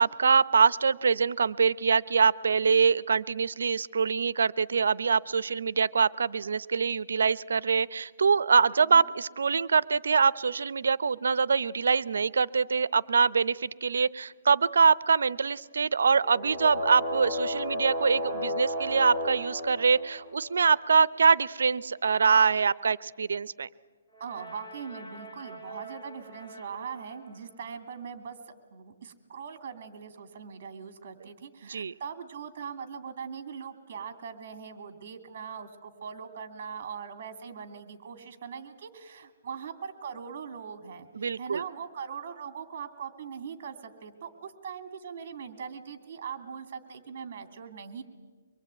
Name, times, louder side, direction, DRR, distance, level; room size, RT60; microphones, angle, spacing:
voice 1, 0.0-23.7 31.7-31.9 41.2-41.6, right 5 dB, 80° right, 19 dB, 0.7 m, -24 dB
voice 2, 8.7-9.1 24.2-28.4 28.7-48.0, right 6 dB, 40° right, 9 dB, 2.8 m, -41 dB
sound 1, 16.2-20.8 24.2-27.0, left 1 dB, 20° left, 4.3 m, -35 dB
24.0 x 23.0 x 9.0 m, 1.5 s
hypercardioid pair, 165°, 0 cm